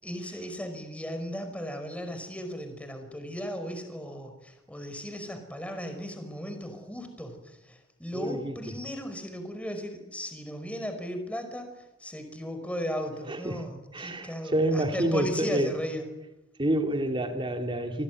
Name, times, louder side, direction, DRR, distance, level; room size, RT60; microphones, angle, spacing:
voice 1, 0.0-11.7 12.0-16.0, equal, 5° left, 5.2 m, -36 dB
voice 2, 8.1-8.5 13.3-13.6 13.9-15.7 16.6-18.0, right 1 dB, 25° right, 2.4 m, -28 dB
28.0 x 20.0 x 9.6 m
head